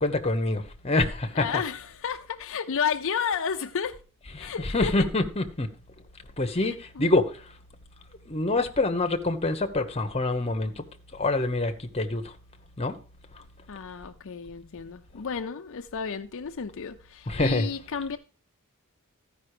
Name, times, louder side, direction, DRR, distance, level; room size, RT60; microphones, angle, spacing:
voice 1, 0.0-1.6 4.3-5.7 6.4-7.5 8.3-10.8 11.1-12.3 12.8-13.0 13.3-13.4 17.3-17.7, left 2 dB, 30° left, 1.1 m, -26 dB
voice 2, 1.4-4.0 4.4-4.9 7.0-7.1 13.7-18.2, left 6 dB, 65° left, 0.6 m, -32 dB
14.0 x 5.4 x 4.9 m
head